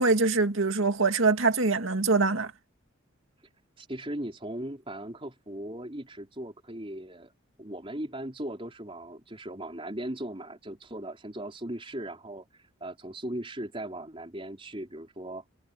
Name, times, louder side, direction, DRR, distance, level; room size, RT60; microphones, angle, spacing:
voice 1, 0.0-2.5, right 3 dB, 75° right, 2.1 m, -24 dB
voice 2, 3.8-7.3 7.6-15.4, right 1 dB, 25° right, 4.2 m, -38 dB
head